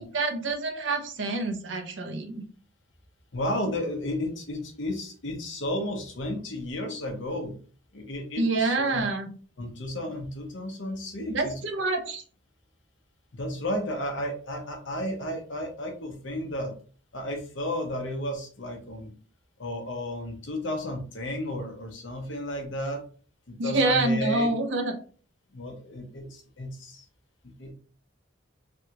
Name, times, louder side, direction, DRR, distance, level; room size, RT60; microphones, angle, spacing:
voice 1, 0.0-2.4 8.4-9.3 11.3-12.2 23.6-24.9, right 2 dB, 65° right, 5 dB, 0.7 m, -27 dB
voice 2, 3.3-7.5 7.9-9.0 9.6-11.6 13.3-16.7 17.1-19.1 19.6-23.0 23.5-24.5 25.5-27.0 27.4-27.7, left 1 dB, 65° left, 3 dB, 0.8 m, -33 dB
3.5 x 2.3 x 2.9 m, 0.40 s
head